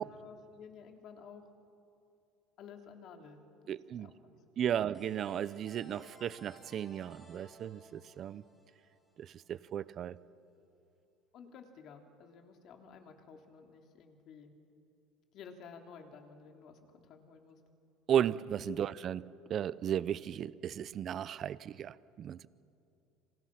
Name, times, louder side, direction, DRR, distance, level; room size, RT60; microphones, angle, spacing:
voice 1, 0.0-1.5 2.6-3.5 4.0-4.4 11.3-14.5 15.3-17.6 18.7-18.8, left 6 dB, 50° left, 4 dB, 2.9 m, -53 dB
voice 2, 3.7-4.1 4.6-8.4 9.2-10.2 18.1-19.2 19.5-22.5, right 10 dB, 40° right, 18 dB, 0.6 m, -35 dB
sound 1, 4.9-9.6, left 1 dB, 20° left, 6.7 m, -58 dB
30.0 x 26.5 x 5.9 m, 2.7 s
cardioid pair, 140°, 0 cm